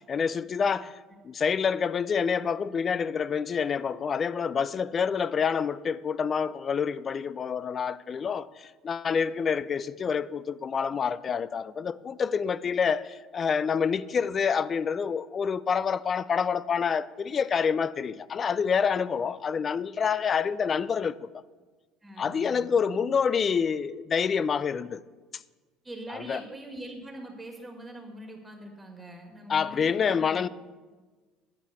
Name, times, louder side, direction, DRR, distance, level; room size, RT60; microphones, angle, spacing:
voice 1, 0.1-0.9 1.2-21.4 22.2-25.0 25.3-25.4 26.1-26.4 29.5-30.5, left 6 dB, 40° left, 0.4 m, -27 dB
voice 2, 22.0-22.7 25.8-30.4, right 1 dB, 15° right, 1.7 m, -43 dB
10.5 x 5.0 x 8.0 m
supercardioid pair, 80°, 0 cm